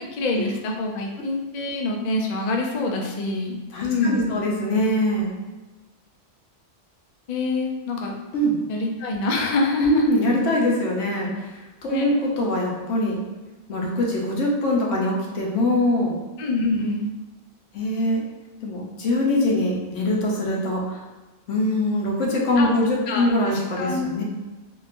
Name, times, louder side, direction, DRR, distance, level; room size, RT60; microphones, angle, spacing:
voice 1, 0.0-4.4 7.3-8.1 8.7-10.0 11.9-12.1 16.4-17.1 22.6-22.8 23.1-24.1, left 2 dB, 60° left, 1 dB, 0.4 m, -26 dB
voice 2, 3.7-5.3 8.3-8.6 9.8-13.2 13.7-16.2 17.7-18.2 18.6-21.0 21.5-24.2, left 1 dB, 85° left, -2 dB, 1.1 m, -23 dB
3.5 x 2.3 x 2.5 m, 1.2 s
omnidirectional pair, 1.2 m